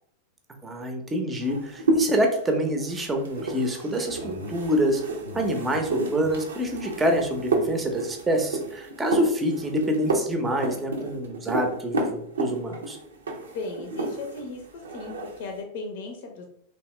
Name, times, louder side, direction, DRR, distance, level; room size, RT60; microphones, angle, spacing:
voice 1, 0.6-5.0 5.3-13.0, equal, 15° right, 4 dB, 0.7 m, -26 dB
sound 1, 1.4-14.5 14.8-15.5, right 2 dB, 70° right, 0.7 m, -31 dB
Laughter, 4.1-5.8 6.2-6.3 6.6-6.8 7.1-8.6, left 1 dB, 90° right, 1.1 m, -43 dB
voice 2, 13.5-16.5, left 3 dB, 50° left, 3 dB, 0.7 m, -36 dB
3.4 x 3.0 x 3.1 m, 0.67 s
figure-of-eight pair, 90°, 0 cm